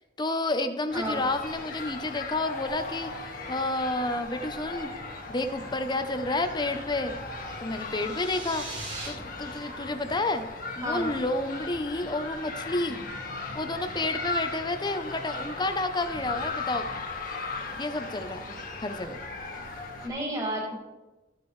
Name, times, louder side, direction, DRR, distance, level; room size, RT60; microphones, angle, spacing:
voice 1, 0.2-4.9 5.3-7.2 7.6-8.7 9.0-10.5 10.8-13.0 13.5-17.0 17.7-18.4 18.8-19.2, left 2 dB, 25° left, 8 dB, 0.7 m, -30 dB
sound 1, 0.9-20.1, left 3 dB, 50° left, 1.5 m, -37 dB
sound 2, 7.8-9.1, right 2 dB, 75° right, 2.9 m, -39 dB
voice 2, 20.0-20.7, equal, 20° right, -4 dB, 3.0 m, -31 dB
14.0 x 7.0 x 3.3 m, 1.1 s
head